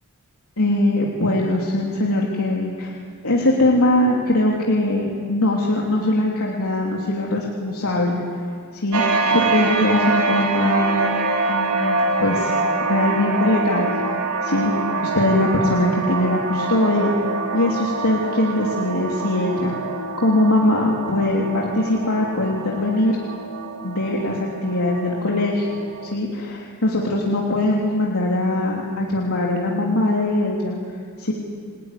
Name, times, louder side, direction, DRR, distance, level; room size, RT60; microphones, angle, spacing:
voice 1, 0.6-2.9 3.2-8.2 8.7-11.1 11.5-12.5 12.9-13.9 14.4-17.1 17.5-19.8 20.2-23.2 23.8-25.7 26.1-30.8 31.2-31.3, left 1 dB, 85° left, -3 dB, 3.2 m, -21 dB
sound 1, 8.9-26.2, right 3 dB, 90° right, 2.2 m, -25 dB
28.5 x 18.5 x 10.0 m, 2.1 s
head